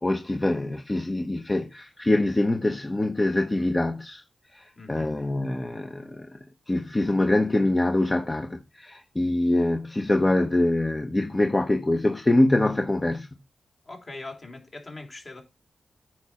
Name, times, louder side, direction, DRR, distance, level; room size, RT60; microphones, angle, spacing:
voice 1, 0.0-4.2 4.5-6.3 6.7-13.3, left 1 dB, 30° left, 1.1 m, -24 dB
voice 2, 4.8-5.2 13.8-15.4, left 2 dB, 50° left, 3.3 m, -41 dB
9.2 x 4.7 x 5.7 m
cardioid pair, 55°, 0 cm